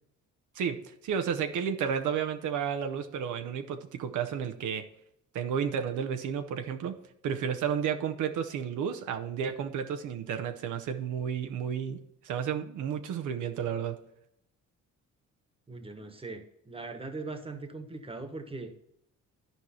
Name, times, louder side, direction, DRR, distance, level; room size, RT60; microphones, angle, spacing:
voice 1, 0.5-4.9 5.3-14.0, right 7 dB, 80° right, 0.8 m, -32 dB
voice 2, 15.7-18.7, right 3 dB, 20° right, 1.3 m, -40 dB
12.0 x 4.8 x 4.4 m
cardioid pair, 90°, 30 cm